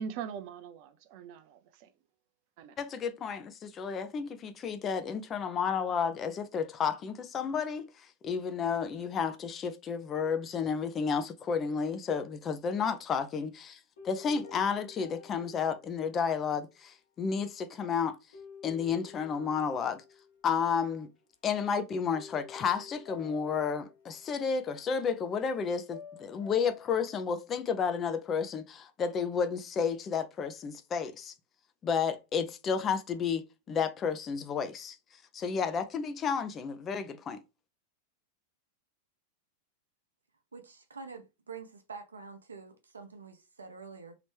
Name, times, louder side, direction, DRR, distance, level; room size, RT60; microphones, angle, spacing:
voice 1, 0.0-1.9 2.6-2.7, right 7 dB, 45° right, 0.5 m, -41 dB
voice 2, 2.8-13.8 14.0-18.2 18.6-20.0 20.4-21.1 21.4-31.3 31.8-35.0 35.3-37.4, left 6 dB, 25° left, 0.6 m, -32 dB
sound 1, 13.1-13.5 14.0-16.6 18.3-20.9 21.2-21.6 22.1-24.9 25.9-27.4, left 6 dB, 60° left, 1.0 m, -51 dB
voice 3, 40.5-44.1, right 5 dB, 75° right, 0.8 m, -46 dB
3.1 x 2.9 x 3.3 m
figure-of-eight pair, 90°, 0 cm